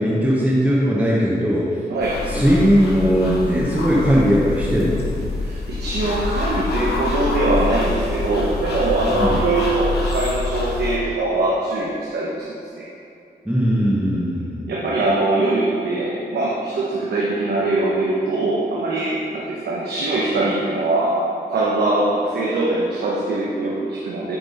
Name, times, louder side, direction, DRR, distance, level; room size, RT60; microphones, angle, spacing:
voice 1, 0.0-1.7 2.3-5.0 9.1-9.4 13.4-14.6, equal, 10° right, -7 dB, 1.1 m, -18 dB
voice 2, 1.9-2.2 5.4-12.5 12.8-12.9 14.7-21.2 21.5-24.4, right 2 dB, 85° right, -5 dB, 0.9 m, -22 dB
sound 1, 2.0-11.0, left 3 dB, 85° left, 1.1 m, -26 dB
8.0 x 3.4 x 5.3 m, 2.7 s
cardioid pair, 70°, 17 cm